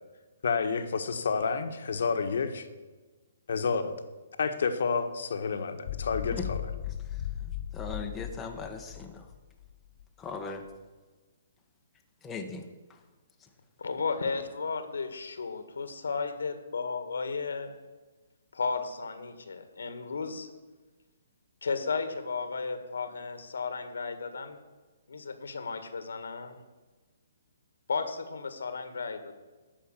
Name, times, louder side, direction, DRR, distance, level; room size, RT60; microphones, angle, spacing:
voice 1, 0.4-2.7 3.5-3.9 4.4-6.7, left 5 dB, 70° left, 8 dB, 1.4 m, -29 dB
sound 1, 5.9-10.1, left 10 dB, 45° left, 0.5 m, -37 dB
voice 2, 7.7-9.3 10.2-10.6 12.2-12.6, left 4 dB, 10° left, 2 dB, 1.0 m, -38 dB
voice 3, 13.8-17.8 18.5-20.5 21.6-24.6 25.1-26.6 27.9-29.3, left 4 dB, 90° left, 9 dB, 1.7 m, -34 dB
13.0 x 5.5 x 9.0 m, 1.3 s
hypercardioid pair, 160°, 0 cm